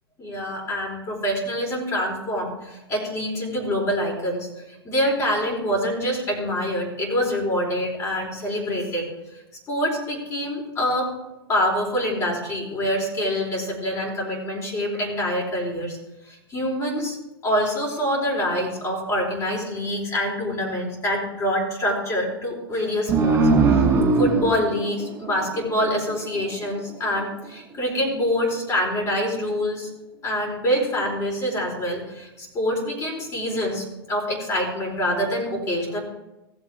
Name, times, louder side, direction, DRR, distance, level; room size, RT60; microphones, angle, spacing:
voice 1, 0.2-4.5 4.8-9.1 9.7-11.1 11.5-16.0 16.5-17.2 17.4-23.4 23.7-23.9 24.2-29.9 30.2-36.0, equal, 25° left, -2 dB, 4.3 m, -25 dB
sound 1, 23.1-26.2, right 4 dB, 20° right, 3.1 m, -20 dB
16.0 x 7.6 x 3.6 m, 0.99 s
hypercardioid pair, 105°, 13 cm